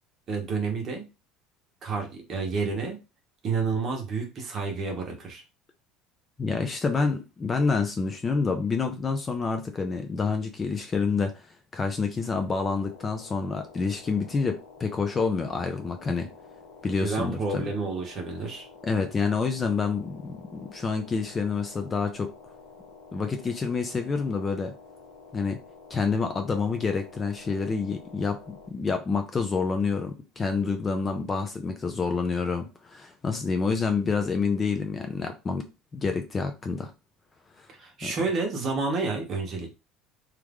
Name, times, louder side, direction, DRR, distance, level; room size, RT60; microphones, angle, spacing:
voice 1, 0.3-1.0 1.8-3.0 3.4-5.4 17.0-18.7 37.8-39.7, right 4 dB, 35° right, 1.0 m, -30 dB
voice 2, 6.4-11.3 11.7-16.3 16.8-17.6 18.8-22.3 23.1-24.7 25.3-25.6 25.9-35.6 35.9-36.9 37.6-37.7 38.0-38.1, left 4 dB, 20° left, 0.4 m, -28 dB
sound 1, 12.7-28.7, left 4 dB, 55° left, 0.9 m, -50 dB
3.1 x 2.4 x 3.5 m
cardioid pair, 155°, 0 cm